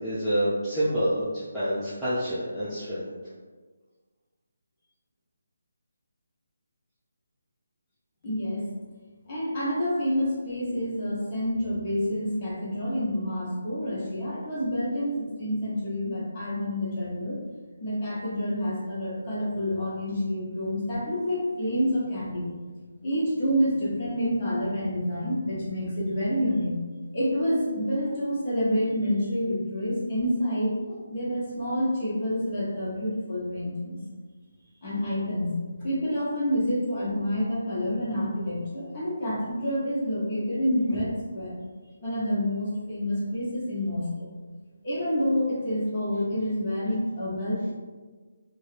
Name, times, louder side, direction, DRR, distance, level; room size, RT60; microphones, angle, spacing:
voice 1, 0.0-3.1, equal, ahead, -17 dB, 0.6 m, -27 dB
voice 2, 8.2-8.7 9.3-17.4 17.8-22.4 23.0-26.7 27.1-34.0 34.8-35.5 35.8-41.6 42.0-44.3 44.8-47.7, equal, 30° left, -8 dB, 1.2 m, -28 dB
3.7 x 2.3 x 3.3 m, 1.4 s
figure-of-eight pair, 150°, 0 cm